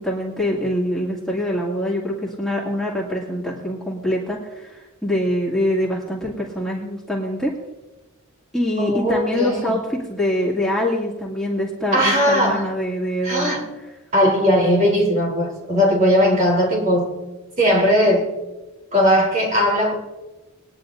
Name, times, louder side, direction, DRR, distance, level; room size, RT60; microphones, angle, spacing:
voice 1, 0.0-7.5 8.5-13.5, equal, ahead, -7 dB, 2.3 m, -24 dB
voice 2, 8.8-9.8 11.9-12.7 13.2-13.7 14.1-17.1 17.6-18.3 18.9-20.0, equal, 35° right, -2 dB, 3.5 m, -18 dB
22.0 x 10.5 x 2.6 m, 1.1 s
head